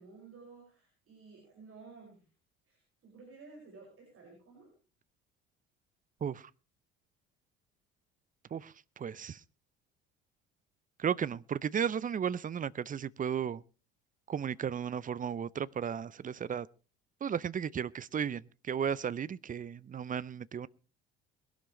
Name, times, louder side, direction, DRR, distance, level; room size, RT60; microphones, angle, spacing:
voice 1, 0.0-2.3 2.7-4.7, right 4 dB, 45° right, 5.6 m, -54 dB
voice 2, 8.5-9.4 11.0-13.6 14.3-16.7 17.2-20.7, right 8 dB, 25° right, 0.6 m, -34 dB
22.0 x 11.5 x 3.1 m
figure-of-eight pair, 60°, 32 cm